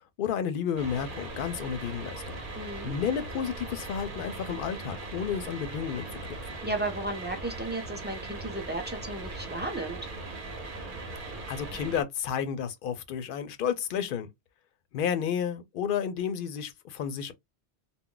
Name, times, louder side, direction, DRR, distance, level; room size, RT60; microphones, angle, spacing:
voice 1, 0.2-2.4 2.8-6.2 11.5-14.3 14.9-17.3, left 8 dB, 60° left, 0.6 m, -31 dB
sound 1, 0.8-12.0, right 2 dB, 50° right, 0.9 m, -39 dB
voice 2, 2.6-3.0 6.6-10.1, right 2 dB, 15° right, 0.4 m, -34 dB
2.3 x 2.1 x 3.7 m
omnidirectional pair, 1.1 m